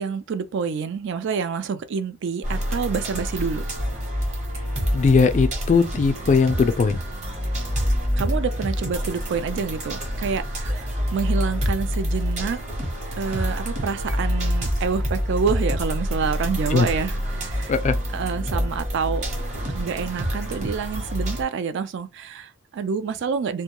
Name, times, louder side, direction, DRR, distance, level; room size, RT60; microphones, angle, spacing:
voice 1, 0.0-3.6 8.2-12.6 13.2-17.7 18.1-19.2 19.7-23.6, right 6 dB, 60° right, 0.3 m, -27 dB
sound 1, 2.4-21.4, equal, 35° right, 1.0 m, -27 dB
voice 2, 4.9-7.0 16.7-16.9 17.7-18.0, left 4 dB, 35° left, 0.3 m, -19 dB
2.2 x 2.2 x 2.8 m
head